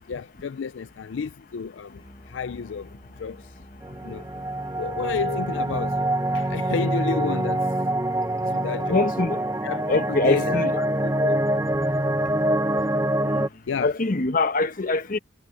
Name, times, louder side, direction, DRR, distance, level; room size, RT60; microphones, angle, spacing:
voice 1, 0.1-3.6 4.0-4.2 4.8-7.8 8.4-9.0 9.6-11.4 12.1-12.2 13.7-13.9, left 6 dB, 80° left, 0.4 m, -31 dB
sound 1, 2.0-6.0, equal, 25° left, 6.9 m, -48 dB
sound 2, 3.8-13.5, right 1 dB, 15° right, 1.0 m, -25 dB
voice 2, 8.9-9.4 9.9-10.8 13.3-13.5 13.8-15.2, left 3 dB, 45° left, 1.0 m, -24 dB
head